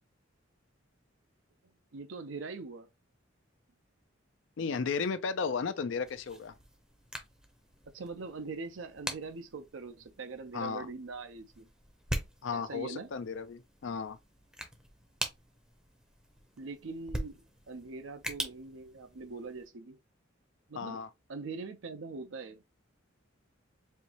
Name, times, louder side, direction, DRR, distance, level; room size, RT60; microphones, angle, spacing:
voice 1, 1.9-2.9 7.9-11.7 12.5-13.1 16.6-17.4 17.7-20.0 20.7-21.0 21.3-22.6, right 4 dB, 70° right, 0.6 m, -42 dB
voice 2, 4.6-6.5 10.5-10.9 12.4-14.2 20.8-21.1, left 5 dB, 65° left, 0.4 m, -34 dB
sound 1, 6.0-19.7, right 1 dB, 5° right, 0.7 m, -43 dB
4.4 x 2.7 x 2.9 m
head